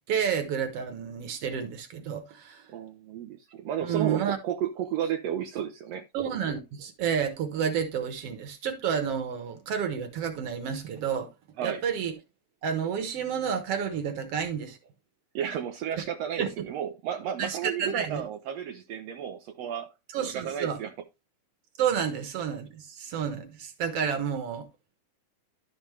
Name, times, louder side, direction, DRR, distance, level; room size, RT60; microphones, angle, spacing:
voice 1, 0.1-2.6 3.8-4.4 6.1-11.3 11.6-12.1 12.6-14.8 16.4-16.7 17.4-18.2 20.1-20.8 21.8-24.7, right 7 dB, 60° right, 1.9 m, -30 dB
voice 2, 2.7-6.0 11.6-11.8 15.3-20.9, right 9 dB, 85° right, 1.4 m, -33 dB
11.5 x 5.3 x 3.2 m
omnidirectional pair, 3.8 m